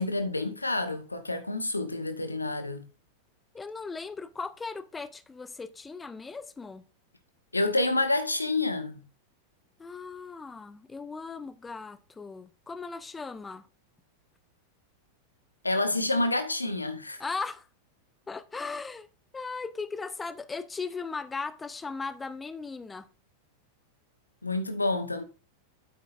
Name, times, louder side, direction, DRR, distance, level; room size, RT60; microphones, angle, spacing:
voice 1, 0.0-2.8 7.5-9.0 15.6-17.2 24.4-25.2, left 2 dB, 80° left, 1.1 m, -28 dB
voice 2, 3.5-6.8 9.8-13.6 17.2-17.7 18.3-19.1 19.3-23.1, left 4 dB, 15° left, 0.6 m, -37 dB
9.4 x 8.3 x 2.6 m
figure-of-eight pair, 90°, 0 cm